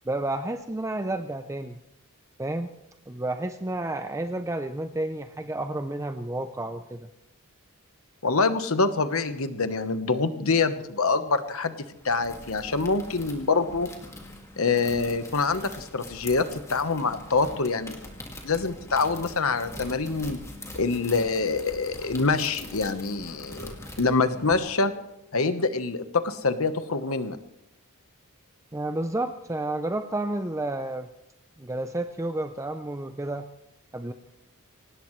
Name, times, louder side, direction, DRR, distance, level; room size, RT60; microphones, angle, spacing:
voice 1, 0.1-1.8 2.4-2.7 3.1-7.1 28.7-31.1 31.6-33.5 33.9-34.1, right 2 dB, 15° right, 8 dB, 0.6 m, -31 dB
voice 2, 8.2-11.8 12.0-13.9 14.6-18.0 18.4-20.4 20.7-24.9 25.3-27.4, left 4 dB, 70° left, 10 dB, 1.2 m, -25 dB
sound 1, 11.9-24.5, left 1 dB, 15° left, 2.2 m, -43 dB
24.0 x 18.5 x 3.2 m, 0.84 s
head